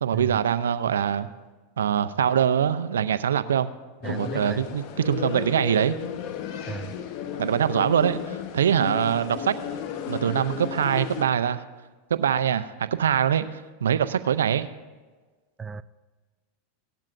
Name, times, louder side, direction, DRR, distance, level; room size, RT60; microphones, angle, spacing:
voice 1, 0.0-1.3 1.8-3.7 4.1-5.9 7.4-9.8 10.1-11.6 12.1-14.7, right 9 dB, 90° right, 13 dB, 0.5 m, -23 dB
sound 1, 4.0-11.3, left 8 dB, 55° left, 1.2 m, -34 dB
voice 2, 4.0-4.6 6.7-7.0 15.6-15.8, right 5 dB, 15° right, 14 dB, 0.4 m, -34 dB
18.0 x 12.0 x 2.6 m, 1.3 s
hypercardioid pair, 105°, 0 cm